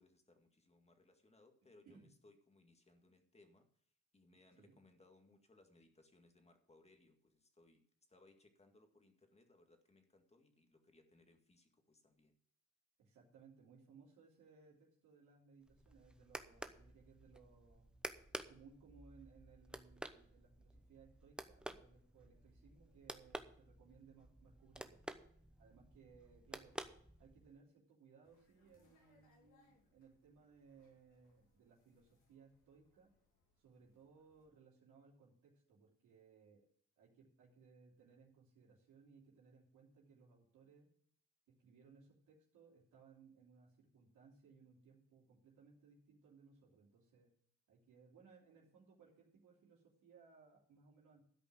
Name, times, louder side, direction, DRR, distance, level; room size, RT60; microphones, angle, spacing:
voice 1, 0.0-12.4, left 2 dB, 20° left, 5 dB, 1.9 m, -68 dB
voice 2, 13.0-18.0 18.3-25.0 25.6-26.8 27.2-33.1 33.6-36.7 37.0-40.9 41.6-47.3 47.7-51.2, right 5 dB, 85° right, -4 dB, 3.0 m, -65 dB
sound 1, 15.6-27.6, right 1 dB, 5° right, 0.8 m, -52 dB
sound 2, 28.2-34.5, left 3 dB, 80° left, 3.6 m, -76 dB
12.5 x 5.3 x 7.5 m, 0.62 s
cardioid pair, 90°, 30 cm